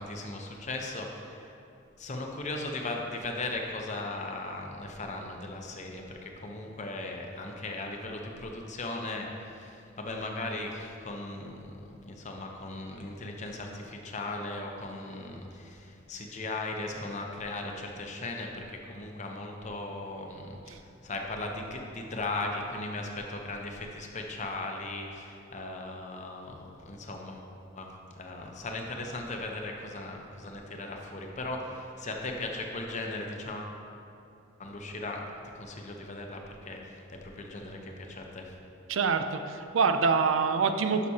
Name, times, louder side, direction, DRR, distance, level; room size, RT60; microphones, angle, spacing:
voice 1, 0.0-1.5 2.0-20.8 21.0-27.5 27.8-33.8 34.6-35.2 35.5-38.5, left 2 dB, 40° left, 1 dB, 0.8 m, -37 dB
voice 2, 38.9-41.1, right 5 dB, 85° right, 8 dB, 0.4 m, -25 dB
11.0 x 5.9 x 2.8 m, 2.7 s
head